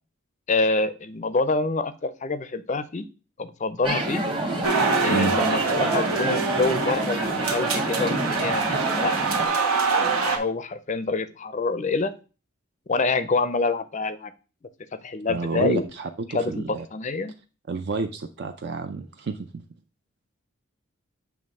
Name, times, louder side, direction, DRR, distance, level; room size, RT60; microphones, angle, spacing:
voice 1, 0.5-3.1 3.4-4.2 5.0-9.5 10.0-12.1 12.9-14.3 15.0-15.9 16.3-17.3, left 3 dB, 35° left, 13 dB, 0.4 m, -26 dB
sound 1, 3.8-9.5, right 2 dB, 25° right, 1.0 m, -27 dB
sound 2, 4.6-10.4, right 4 dB, 85° right, 1.3 m, -25 dB
voice 2, 15.3-16.9 17.7-19.6, right 4 dB, 50° right, 7 dB, 0.4 m, -30 dB
7.1 x 3.1 x 5.3 m, 0.34 s
head